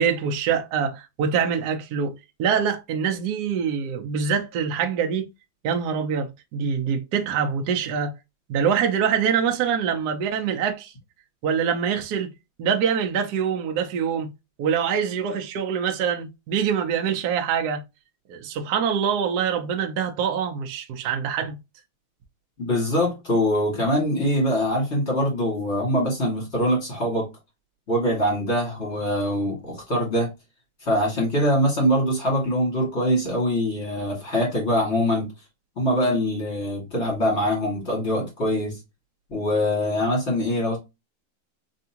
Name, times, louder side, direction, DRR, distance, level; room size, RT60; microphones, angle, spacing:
voice 1, 0.0-5.3 5.6-8.1 8.5-10.9 11.4-12.3 12.6-14.3 14.6-17.8 18.3-21.6, right 7 dB, 65° right, 1.1 m, -24 dB
voice 2, 22.6-27.3 27.9-30.3 30.8-35.3 35.8-38.8 39.3-40.8, equal, 35° left, 2.3 m, -23 dB
3.4 x 3.4 x 2.8 m
omnidirectional pair, 2.0 m